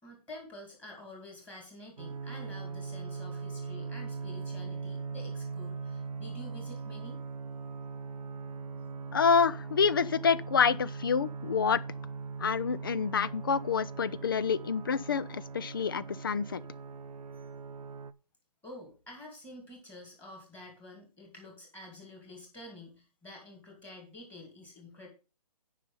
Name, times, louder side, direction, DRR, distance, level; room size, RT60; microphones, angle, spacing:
voice 1, 0.0-7.2 18.6-25.1, left 1 dB, 5° left, 2.3 m, -49 dB
sound 1, 2.0-18.1, right 5 dB, 85° right, 0.9 m, -40 dB
voice 2, 9.1-11.8 12.4-16.6, left 6 dB, 35° left, 0.4 m, -27 dB
9.9 x 5.5 x 5.5 m
hypercardioid pair, 165°, 20 cm